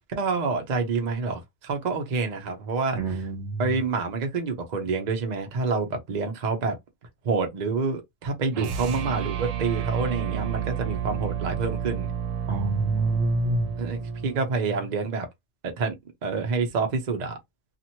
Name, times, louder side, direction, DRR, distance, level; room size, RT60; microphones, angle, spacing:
voice 1, 0.1-3.3 3.6-6.8 7.2-12.1 13.8-15.3 15.6-16.0 16.2-17.4, right 4 dB, 40° right, 0.7 m, -27 dB
voice 2, 2.9-3.7 12.5-13.7, right 2 dB, 70° right, 1.1 m, -26 dB
sound 1, 8.5-14.9, right 8 dB, 85° right, 1.0 m, -31 dB
2.8 x 2.5 x 2.7 m
omnidirectional pair, 1.3 m